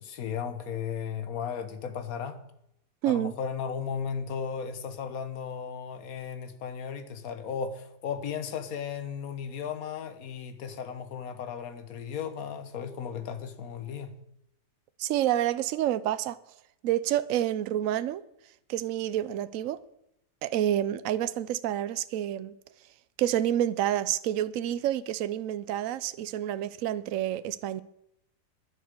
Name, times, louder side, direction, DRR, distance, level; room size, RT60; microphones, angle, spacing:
voice 1, 0.0-2.4 3.1-14.1, left 7 dB, 60° left, 1.5 m, -35 dB
voice 2, 15.0-16.4 16.8-18.2 18.7-19.8 20.4-22.5 23.2-27.8, right 12 dB, 65° right, 0.9 m, -28 dB
11.0 x 10.0 x 6.7 m
omnidirectional pair, 1.8 m